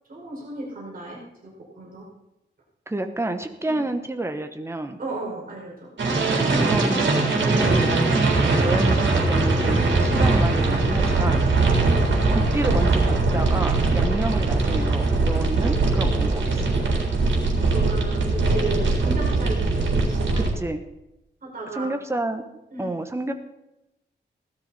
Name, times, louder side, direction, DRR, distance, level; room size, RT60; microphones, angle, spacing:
voice 1, 0.1-2.0 3.7-3.8 5.0-5.9 14.0-14.2 17.6-20.4 21.4-21.9 22.7-22.9, right 3 dB, 50° right, -4 dB, 5.2 m, -34 dB
voice 2, 2.9-5.0 6.4-7.1 7.4-11.4 12.3-16.6 20.4-20.8 21.7-22.5 22.8-23.3, right 2 dB, 15° right, 6 dB, 1.3 m, -29 dB
sound 1, 6.0-20.5, right 3 dB, 80° right, 3.8 m, -21 dB
17.0 x 12.5 x 4.3 m, 0.92 s
wide cardioid pair, 145°, 19 cm